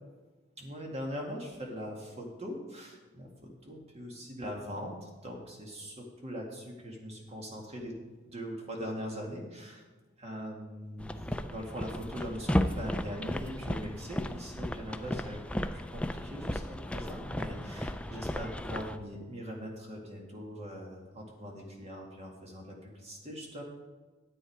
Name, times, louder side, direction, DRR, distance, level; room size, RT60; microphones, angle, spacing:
voice 1, 0.6-8.0 8.3-9.8 10.2-23.6, equal, 35° right, 0 dB, 2.0 m, -41 dB
sound 1, 11.0-19.0, left 1 dB, 5° left, 0.4 m, -34 dB
10.0 x 8.4 x 4.8 m, 1.2 s
head